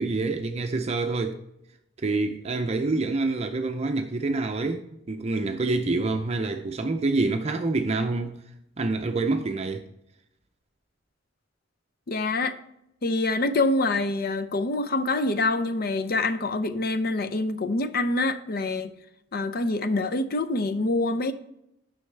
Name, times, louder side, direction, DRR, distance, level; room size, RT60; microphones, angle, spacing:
voice 1, 0.0-1.4 2.0-8.4 8.8-9.8, right 3 dB, 35° right, 0.5 m, -27 dB
voice 2, 12.1-12.6 13.0-18.9 19.3-21.3, left 2 dB, 50° left, 0.6 m, -26 dB
9.7 x 6.3 x 3.3 m
head